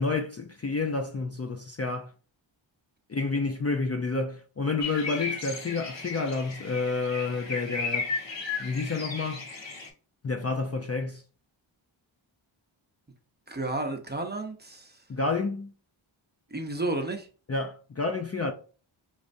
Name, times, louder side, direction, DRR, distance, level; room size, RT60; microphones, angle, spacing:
voice 1, 0.0-2.1 3.1-8.1 8.6-9.5 10.2-11.2 15.1-15.7 17.5-18.5, left 3 dB, 30° left, 0.5 m, -29 dB
sound 1, 4.8-9.9, left 4 dB, 60° left, 1.4 m, -35 dB
voice 2, 13.5-14.9 16.5-17.3, right 2 dB, 20° right, 0.8 m, -32 dB
5.0 x 3.2 x 2.6 m
wide cardioid pair, 85°, 49 cm